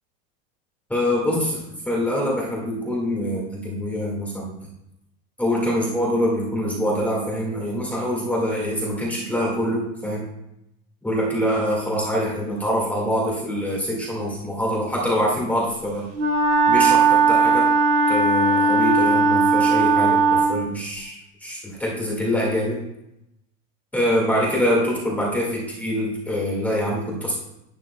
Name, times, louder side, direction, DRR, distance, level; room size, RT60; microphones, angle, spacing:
voice 1, 0.9-4.5 5.4-10.3 11.0-16.1 16.7-17.7 18.1-22.8 23.9-27.4, equal, 5° left, -4 dB, 1.8 m, -24 dB
Wind instrument woodwind instrument, 16.1-20.6, right 4 dB, 35° right, 1.6 m, -18 dB
11.5 x 9.1 x 2.2 m, 0.85 s
supercardioid pair, 160°, 35 cm